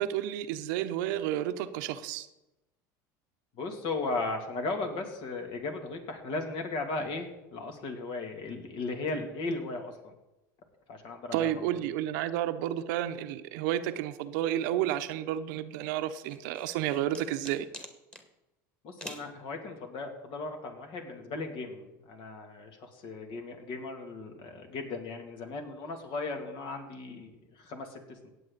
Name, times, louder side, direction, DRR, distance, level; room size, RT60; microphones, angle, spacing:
voice 1, 0.0-2.3 11.3-17.7, right 12 dB, 70° right, 11 dB, 0.8 m, -31 dB
voice 2, 3.5-10.1 10.9-11.6 18.8-28.3, left 3 dB, 55° left, 4 dB, 2.7 m, -36 dB
sound 1, 16.3-18.3 19.0-19.3, equal, 10° left, 2.0 m, -44 dB
17.0 x 8.1 x 4.1 m, 0.96 s
hypercardioid pair, 90°, 10 cm